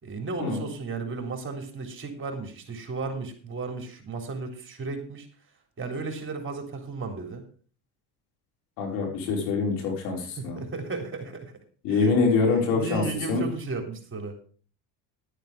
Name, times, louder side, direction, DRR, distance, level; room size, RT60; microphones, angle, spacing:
voice 1, 0.0-5.3 5.8-7.4 10.2-11.5 11.9-12.2 12.7-14.3, right 3 dB, 30° right, 4 dB, 3.7 m, -34 dB
voice 2, 8.8-10.6 11.8-13.0 13.3-13.4, left 4 dB, 85° left, 1 dB, 5.3 m, -25 dB
12.0 x 9.2 x 5.0 m, 0.41 s
supercardioid pair, 95°, 38 cm